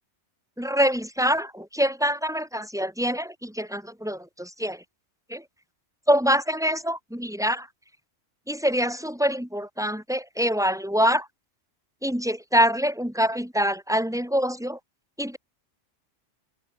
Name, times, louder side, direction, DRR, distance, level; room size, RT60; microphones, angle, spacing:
voice 1, 0.6-4.8 5.3-5.4 6.1-7.7 8.5-11.3 12.0-14.8 15.2-15.4, equal, 5° right, 6.3 m, -25 dB
omnidirectional pair, 1.2 m